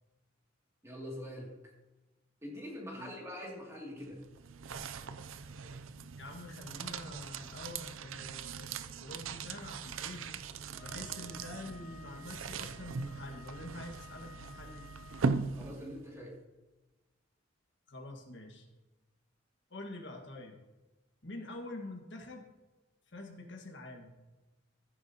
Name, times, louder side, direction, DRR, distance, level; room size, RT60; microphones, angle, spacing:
voice 1, 0.8-1.5 2.4-4.2 15.5-16.4, equal, 15° right, -3 dB, 2.6 m, -44 dB
sound 1, 4.0-16.2, right 4 dB, 85° right, 0.6 m, -40 dB
voice 2, 6.2-10.2 10.8-14.8 17.9-18.7 19.7-20.6 21.2-22.4 23.1-24.2, left 2 dB, 60° left, 2 dB, 1.7 m, -46 dB
Wind instrument woodwind instrument, 10.7-15.6, left 3 dB, 45° right, 2.6 m, -55 dB
15.0 x 9.5 x 2.9 m, 1.1 s
head